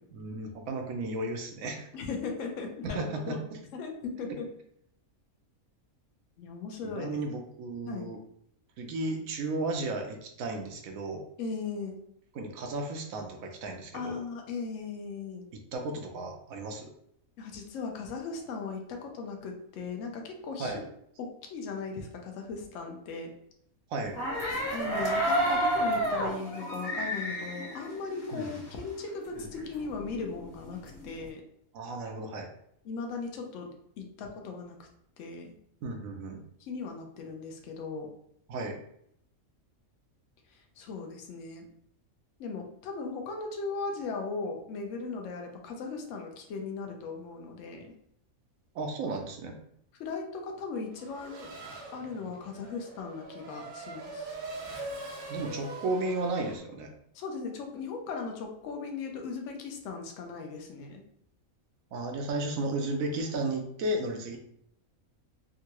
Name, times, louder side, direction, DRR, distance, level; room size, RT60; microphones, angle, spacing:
voice 1, 0.1-1.9 2.8-3.4 6.8-8.2 8.8-11.2 12.3-14.2 15.5-16.9 20.6-20.8 23.9-24.2 28.3-28.6 31.7-32.5 35.8-36.4 38.5-38.8 48.7-49.6 55.3-56.9 61.9-64.4, right 2 dB, 75° right, 3 dB, 1.0 m, -34 dB
voice 2, 1.9-3.4 3.7-4.5 6.4-7.2 7.9-8.1 11.4-12.0 13.9-15.4 17.4-20.8 21.2-23.3 24.7-31.4 32.8-33.7 34.0-34.9 35.2-35.5 36.6-38.1 40.5-41.7 42.4-47.9 50.0-51.5 51.9-54.3 57.1-61.0, left 4 dB, 70° left, 2 dB, 0.9 m, -38 dB
sound 1, 24.1-28.7 29.1-29.2 29.4-31.2, right 1 dB, 45° left, 1.3 m, -30 dB
Race car auto racing / Accelerating revving vroom, 50.9-56.6, right 2 dB, 50° right, 0.6 m, -42 dB
3.7 x 2.2 x 2.9 m, 0.70 s
omnidirectional pair, 1.5 m